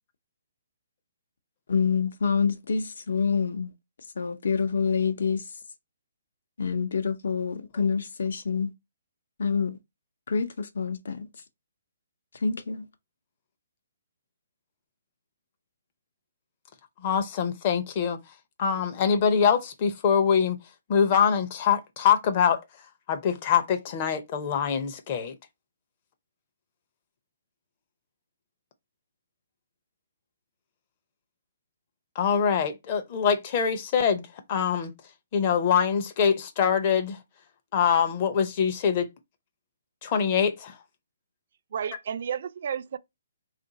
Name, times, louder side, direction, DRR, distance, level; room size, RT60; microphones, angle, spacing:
voice 1, 1.7-3.7 4.2-5.5 6.6-8.7 9.4-9.8 10.3-11.3 12.4-12.9, left 5 dB, 70° left, 0.8 m, -27 dB
voice 2, 17.0-18.2 18.6-20.6 20.9-22.6 23.1-25.3 32.2-34.9 35.3-37.2 37.7-39.1 40.0-40.7, left 7 dB, 30° left, 0.6 m, -24 dB
voice 3, 41.7-43.0, right 8 dB, 50° right, 0.4 m, -32 dB
3.6 x 2.5 x 3.9 m
hypercardioid pair, 165°, 0 cm